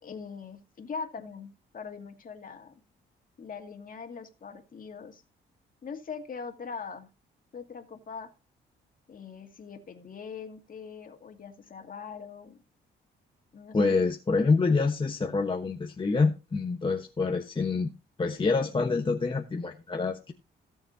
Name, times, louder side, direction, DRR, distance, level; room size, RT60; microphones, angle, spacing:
voice 1, 0.0-2.7 3.4-5.2 5.8-7.1 7.5-8.3 9.1-12.6 13.5-14.1, left 5 dB, 45° left, 2.3 m, -41 dB
voice 2, 13.7-17.9 18.2-20.3, left 4 dB, 25° left, 1.1 m, -26 dB
17.0 x 7.0 x 2.8 m
cardioid pair, 90°, 20 cm